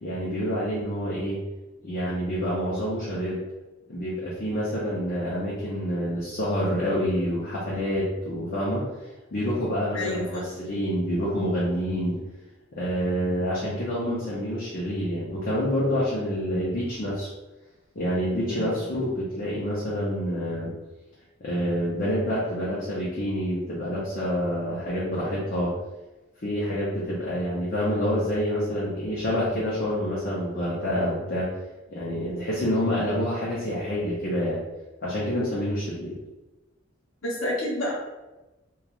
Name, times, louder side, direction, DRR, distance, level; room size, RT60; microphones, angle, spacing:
voice 1, 0.0-1.4 1.8-3.4 3.9-8.9 9.3-12.2 12.7-17.3 17.9-20.7 21.4-25.7 26.4-31.5 31.9-34.6 35.0-36.2, equal, 45° left, -7 dB, 0.6 m, -27 dB
voice 2, 9.9-10.4 13.6-13.8 18.5-18.8 32.1-32.5 37.2-37.9, left 1 dB, 80° left, -4 dB, 0.8 m, -30 dB
2.9 x 2.3 x 2.4 m, 1.1 s
head